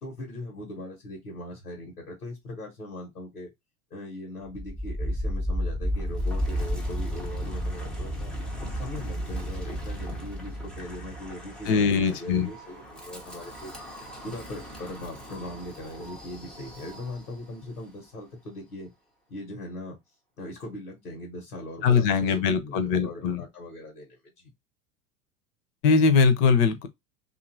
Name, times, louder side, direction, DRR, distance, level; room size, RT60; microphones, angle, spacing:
voice 1, 0.0-3.5 3.9-8.3 8.7-13.7 14.2-18.9 19.3-20.0 20.4-24.5, left 1 dB, 85° left, 1.0 m, -40 dB
Wind, 4.5-17.5, equal, ahead, 0.4 m, -34 dB
voice 2, 11.7-12.5 21.8-23.4 25.8-26.9, left 5 dB, 45° left, 0.6 m, -21 dB
2.7 x 2.5 x 2.5 m
figure-of-eight pair, 90°, 44 cm